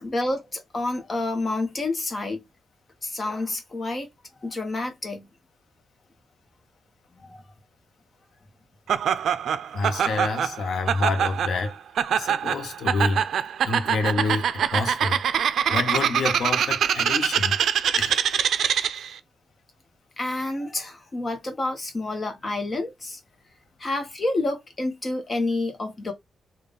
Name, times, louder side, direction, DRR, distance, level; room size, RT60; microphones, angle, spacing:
voice 1, 0.0-2.4 3.0-4.1 4.4-5.3 7.2-7.4 12.2-12.3 20.2-23.2 23.8-26.1, left 2 dB, 25° left, 0.8 m, -29 dB
Laughter, 8.9-19.1, right 8 dB, 80° right, 0.4 m, -24 dB
voice 2, 9.7-11.8 12.1-13.3 13.6-15.2 15.7-17.6 17.9-18.2, left 3 dB, 80° left, 0.7 m, -28 dB
3.8 x 2.3 x 3.3 m
wide cardioid pair, 180°, 0 cm